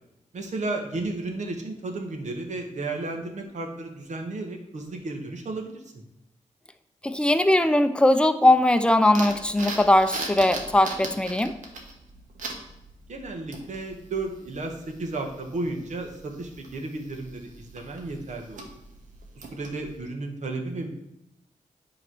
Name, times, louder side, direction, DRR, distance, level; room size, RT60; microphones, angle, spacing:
voice 1, 0.3-6.0 13.1-14.7 15.0-18.7 19.5-20.9, right 2 dB, 65° right, 3 dB, 1.3 m, -33 dB
voice 2, 7.0-11.5, left 1 dB, 10° left, 9 dB, 0.6 m, -20 dB
sound 1, 9.1-20.0, right 3 dB, 85° right, 1.2 m, -40 dB
8.9 x 3.2 x 6.1 m, 0.87 s
cardioid pair, 85°, 13 cm